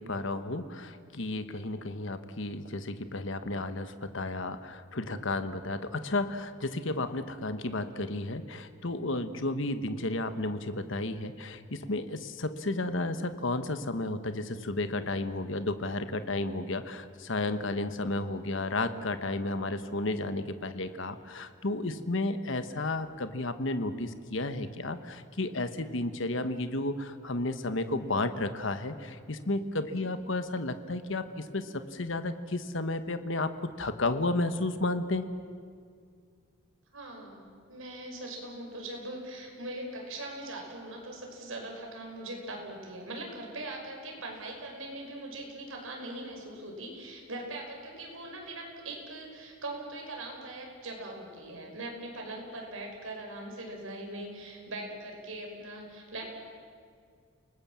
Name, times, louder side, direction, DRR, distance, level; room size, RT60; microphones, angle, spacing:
voice 1, 0.0-35.2, left 2 dB, 60° left, 10 dB, 1.2 m, -32 dB
voice 2, 36.9-56.3, right 1 dB, 75° right, 1 dB, 5.7 m, -41 dB
29.5 x 19.5 x 7.5 m, 2.2 s
head